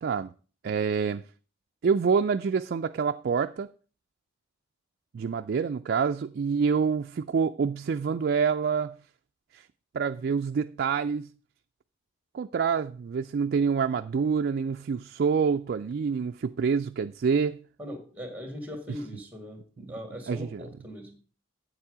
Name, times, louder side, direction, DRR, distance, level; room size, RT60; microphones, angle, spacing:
voice 1, 0.0-0.3 0.6-1.2 1.8-3.7 5.1-9.0 9.5-9.7 9.9-11.3 12.3-17.6 20.3-20.7, right 6 dB, 55° right, 0.3 m, -27 dB
voice 2, 17.8-21.1, equal, 10° right, 1.9 m, -40 dB
8.6 x 7.3 x 4.9 m
head